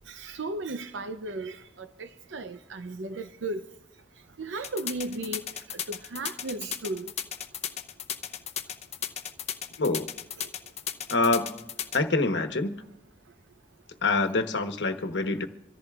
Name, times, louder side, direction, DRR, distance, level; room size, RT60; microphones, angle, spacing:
voice 1, 0.1-3.6 4.4-7.1 10.4-10.5, right 2 dB, 80° right, 0.6 m, -36 dB
sound 1, 4.6-12.0, left 9 dB, 35° left, 0.6 m, -34 dB
voice 2, 9.8-10.1 11.1-11.6 11.9-12.8 14.0-15.5, left 3 dB, 70° left, 1.1 m, -26 dB
26.5 x 14.0 x 2.4 m
head